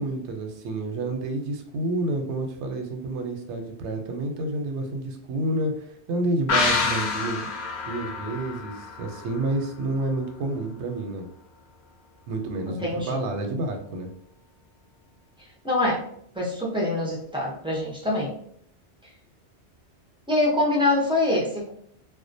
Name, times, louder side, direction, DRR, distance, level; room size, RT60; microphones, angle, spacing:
voice 1, 0.0-7.5 7.8-11.3 12.3-14.1, right 2 dB, 80° right, 4 dB, 0.9 m, -29 dB
sound 1, 6.5-9.9 10.2-10.3, left 4 dB, 55° left, 0.5 m, -28 dB
voice 2, 12.7-13.2 15.6-16.0 16.4-18.3 20.3-21.7, left 2 dB, 10° right, -4 dB, 0.3 m, -24 dB
2.4 x 2.1 x 2.6 m, 0.66 s
omnidirectional pair, 1.2 m